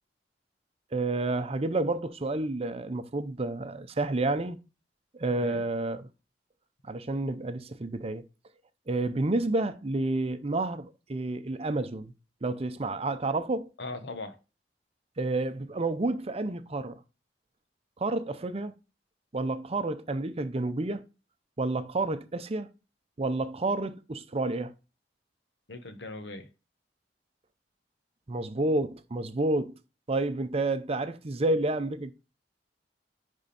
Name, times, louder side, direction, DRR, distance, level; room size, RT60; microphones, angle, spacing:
voice 1, 0.9-4.6 5.1-6.1 6.9-8.2 8.9-12.1 12.4-13.7 15.2-17.0 18.0-18.7 19.3-21.0 21.6-22.7 23.2-24.7 28.3-29.7 30.1-32.1, right 2 dB, 35° right, 0.6 m, -30 dB
voice 2, 5.3-5.6 13.8-14.4 25.7-26.5, left 2 dB, 80° left, 1.2 m, -40 dB
10.5 x 3.6 x 4.2 m
head